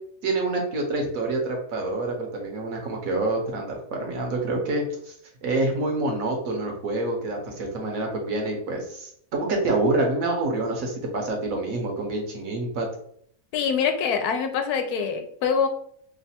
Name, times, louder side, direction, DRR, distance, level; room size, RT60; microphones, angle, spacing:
voice 1, 0.2-5.1 5.4-12.9, right 2 dB, 65° right, 2 dB, 1.2 m, -27 dB
voice 2, 13.5-15.7, left 6 dB, 80° left, 6 dB, 1.1 m, -24 dB
3.1 x 2.2 x 4.2 m, 0.65 s
omnidirectional pair, 1.6 m